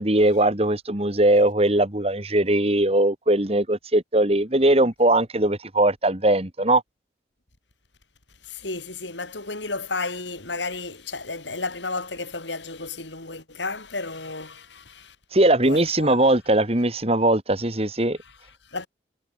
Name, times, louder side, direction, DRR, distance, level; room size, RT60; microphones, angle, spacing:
voice 1, 0.0-6.8 15.3-18.2, right 1 dB, 35° right, 2.3 m, -20 dB
voice 2, 8.4-15.2 15.6-16.2 18.2-18.9, left 3 dB, 80° left, 6.7 m, -33 dB
head